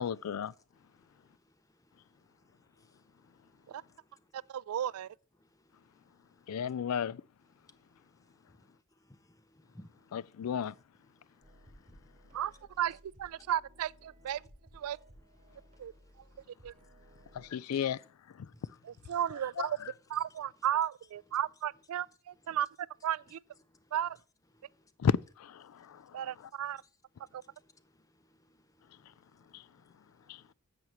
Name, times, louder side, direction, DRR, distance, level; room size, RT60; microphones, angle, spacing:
voice 1, 0.0-0.5 6.5-7.2 10.1-10.7 17.3-18.5 19.6-19.9 25.0-26.5 29.5-29.6 30.3-30.4, left 7 dB, 85° left, 0.4 m, -34 dB
voice 2, 0.7-4.5 5.4-6.7 7.5-12.5 13.3-13.5 14.2-14.5 14.7-17.7 18.5-19.5 20.3-20.7 21.9-22.6 23.3-24.0 24.5-24.9 25.7-30.5, left 1 dB, 15° left, 0.6 m, -65 dB
voice 3, 4.3-5.1 12.3-12.5 12.8-14.4 14.7-15.0 15.8-15.9 16.6-16.7 19.1-19.8 20.1-22.7 23.0-23.4 23.9-24.2 26.1-26.8 27.3-27.4, right 10 dB, 80° right, 0.3 m, -34 dB
sound 1, 11.4-17.5, equal, 30° right, 3.4 m, -59 dB
10.5 x 8.0 x 3.0 m
head